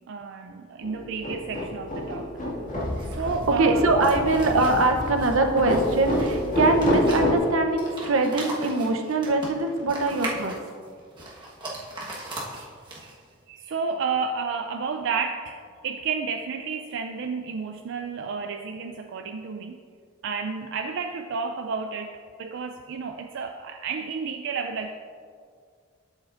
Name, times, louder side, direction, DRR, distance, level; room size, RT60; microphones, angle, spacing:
voice 1, 0.1-2.3 3.1-3.9 4.5-4.8 12.5-12.7 13.0-13.2 13.5-19.8 20.2-24.9, right 5 dB, 60° right, 5 dB, 0.4 m, -31 dB
sound 1, 0.8-7.4, left 1 dB, 40° left, 2.0 m, -28 dB
sound 2, 2.8-13.3, right 2 dB, 25° right, 1.3 m, -39 dB
voice 2, 3.6-10.5, right 2 dB, 80° right, 4 dB, 0.8 m, -22 dB
12.0 x 7.4 x 2.5 m, 2.1 s
head